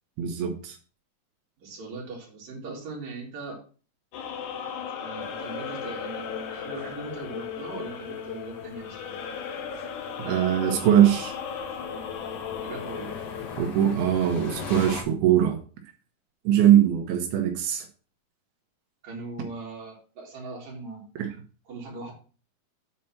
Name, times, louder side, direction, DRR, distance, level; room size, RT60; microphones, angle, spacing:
voice 1, 0.2-0.8 10.3-11.3 13.6-15.6 16.4-17.9, right 10 dB, 85° right, 3 dB, 3.1 m, -21 dB
voice 2, 1.6-3.6 5.0-9.2 12.6-13.2 19.0-21.3 21.7-22.1, right 3 dB, 50° right, -3 dB, 4.0 m, -40 dB
sound 1, 4.1-13.6, left 7 dB, 70° left, 2.3 m, -36 dB
sound 2, 5.2-15.0, left 4 dB, 50° left, 2.4 m, -43 dB
9.3 x 4.4 x 5.9 m, 0.38 s
omnidirectional pair, 4.3 m